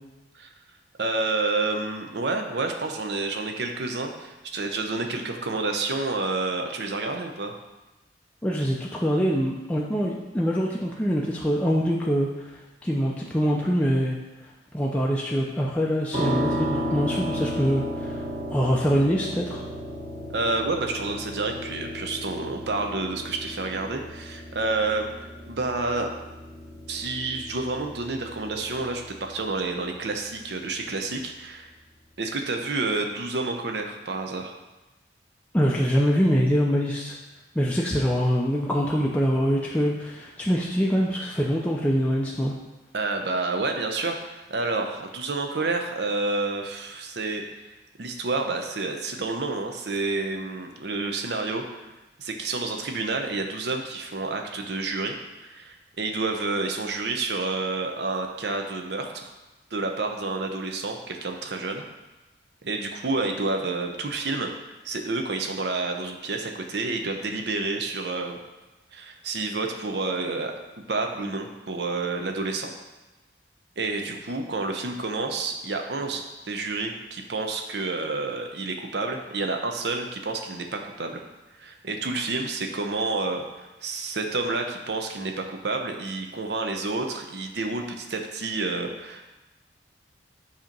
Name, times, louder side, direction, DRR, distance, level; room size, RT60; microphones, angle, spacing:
voice 1, 1.0-7.6 20.3-26.1 26.9-31.7 32.2-34.6 42.9-47.4 48.0-51.9 52.2-55.2 55.4-59.3 59.7-61.8 62.6-64.5 64.8-68.4 68.9-70.5 70.9-72.7 73.8-81.2 81.6-89.3, right 3 dB, 60° right, 4 dB, 0.7 m, -29 dB
voice 2, 8.4-14.2 14.7-18.2 18.5-19.6 35.5-37.2 37.5-42.5, equal, 5° left, -3 dB, 0.4 m, -24 dB
sound 1, 16.1-31.0, equal, 40° right, 1.1 m, -34 dB
7.6 x 2.9 x 5.2 m, 1.1 s
head